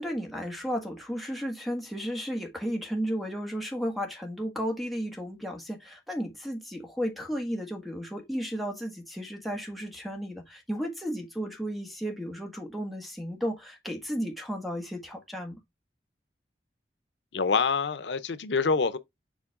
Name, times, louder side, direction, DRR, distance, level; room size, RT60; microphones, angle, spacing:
voice 1, 0.0-15.6, equal, ahead, 1.6 m, -34 dB
voice 2, 17.3-19.0, left 5 dB, 90° left, 0.6 m, -26 dB
7.3 x 3.7 x 3.6 m
head